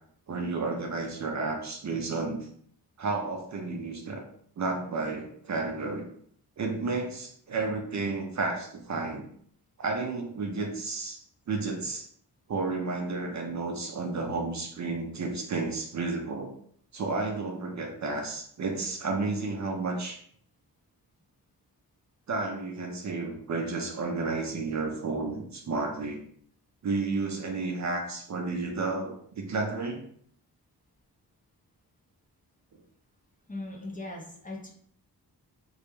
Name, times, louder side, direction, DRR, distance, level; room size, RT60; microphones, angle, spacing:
voice 1, 0.3-2.5 3.0-4.2 4.6-6.1 6.6-9.3 9.8-12.1 12.5-16.5 16.9-20.2 22.3-26.2 26.8-30.0, right 3 dB, 45° right, 2 dB, 0.4 m, -32 dB
voice 2, 33.5-34.7, left 2 dB, 20° left, -1 dB, 0.5 m, -39 dB
2.3 x 2.0 x 3.0 m, 0.62 s
wide cardioid pair, 100°, 40 cm